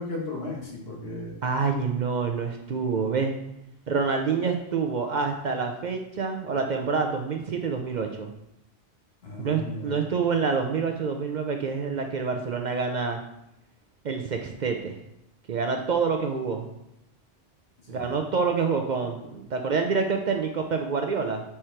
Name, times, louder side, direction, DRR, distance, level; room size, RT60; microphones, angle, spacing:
voice 1, 0.0-1.3 9.2-10.0 17.9-18.1, left 2 dB, 65° left, -2 dB, 1.5 m, -35 dB
voice 2, 1.4-3.3 3.9-8.3 9.4-13.2 14.0-15.0 15.5-16.7 17.9-21.4, right 5 dB, 55° right, 4 dB, 0.5 m, -27 dB
4.8 x 4.4 x 4.4 m, 0.83 s
omnidirectional pair, 1.1 m